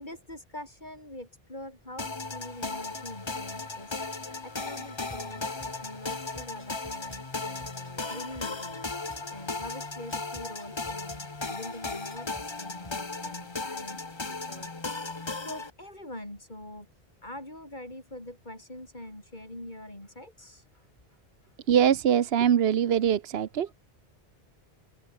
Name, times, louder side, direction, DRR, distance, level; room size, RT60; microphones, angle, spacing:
voice 1, 0.0-4.0 4.4-8.8 9.3-14.7 15.4-16.9 17.2-20.8, left 1 dB, 50° left, 6.8 m, -44 dB
sound 1, 2.0-15.7, left 3 dB, 25° left, 1.2 m, -36 dB
Drum kit / Bass drum, 5.1-5.3 5.6-7.3 7.6-9.3 9.6-11.3 11.7-13.0, equal, 10° left, 6.1 m, -50 dB
voice 2, 21.7-23.7, right 9 dB, 75° right, 1.0 m, -23 dB
open air
omnidirectional pair, 1.0 m